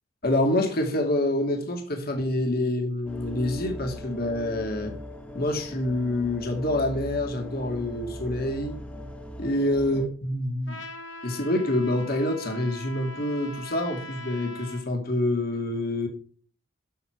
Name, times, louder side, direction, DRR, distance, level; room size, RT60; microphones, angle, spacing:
voice 1, 0.2-5.0 5.3-8.8 9.4-10.8 11.2-16.1, left 1 dB, 50° left, 4 dB, 2.4 m, -27 dB
sound 1, 3.0-10.1, equal, 5° left, 1.6 m, -39 dB
Trumpet, 10.7-14.9, left 1 dB, 75° left, 2.2 m, -41 dB
11.5 x 7.0 x 4.6 m, 0.42 s
head